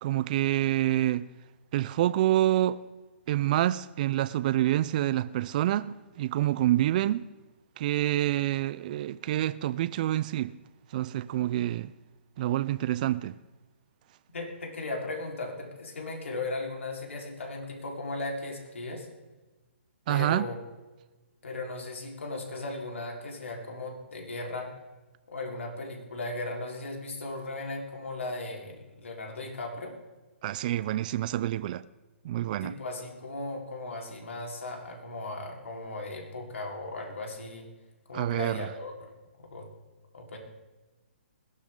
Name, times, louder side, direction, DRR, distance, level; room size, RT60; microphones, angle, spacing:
voice 1, 0.0-1.3 1.7-2.8 3.3-7.3 7.8-10.5 10.9-11.9 12.4-13.4 20.1-20.4 30.4-31.8 32.2-32.7 38.1-38.7, right 13 dB, 40° right, 0.4 m, -27 dB
voice 2, 14.3-19.1 20.1-20.6 21.4-24.7 25.3-29.9 32.6-37.7 38.1-39.1 39.4-39.7 40.1-40.4, left 2 dB, 80° left, 4.2 m, -37 dB
20.5 x 13.0 x 3.8 m
hypercardioid pair, 140°, 7 cm